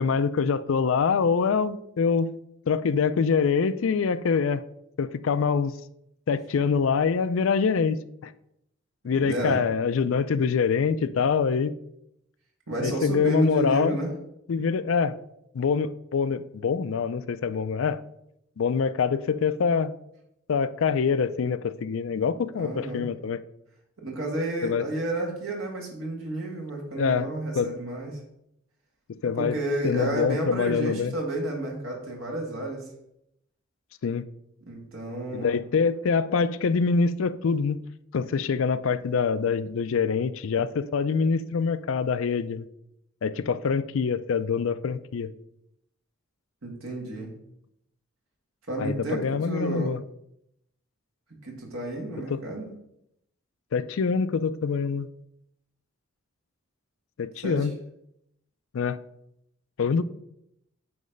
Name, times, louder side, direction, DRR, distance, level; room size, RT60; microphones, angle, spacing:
voice 1, 0.0-2.4 2.7-4.6 5.0-5.7 6.3-8.3 9.0-11.8 12.8-14.0 14.5-15.2 15.5-18.0 18.6-19.9 20.5-23.4 24.6-24.8 27.0-27.3 27.6-27.7 29.2-29.6 29.8-31.1 34.0-34.2 35.3-37.8 38.1-42.7 43.2-45.3 48.8-50.0 52.3-52.4 53.7-55.1 57.2-57.7 58.7-59.0 59.8-60.0, left 5 dB, 70° left, 0.4 m, -25 dB
voice 2, 9.1-9.6 12.7-14.1 22.5-23.0 24.0-28.2 29.4-32.9 34.7-35.6 46.6-47.3 48.7-49.9 51.4-52.7 57.4-57.7, right 1 dB, 80° right, 1.8 m, -31 dB
9.4 x 3.1 x 5.2 m
head